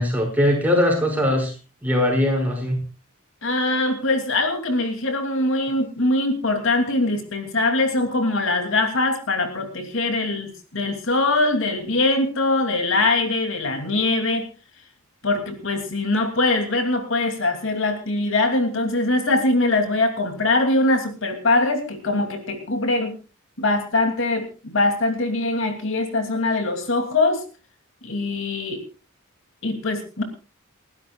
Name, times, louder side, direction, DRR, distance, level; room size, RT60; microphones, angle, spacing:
voice 1, 0.0-1.5 1.8-2.8, left 1 dB, 10° right, 1 dB, 5.9 m, -20 dB
voice 2, 3.4-14.5 15.2-23.1 23.6-27.4 28.0-28.8 29.6-30.2, left 2 dB, 65° left, 5 dB, 2.8 m, -22 dB
30.0 x 12.5 x 2.4 m, 0.32 s
head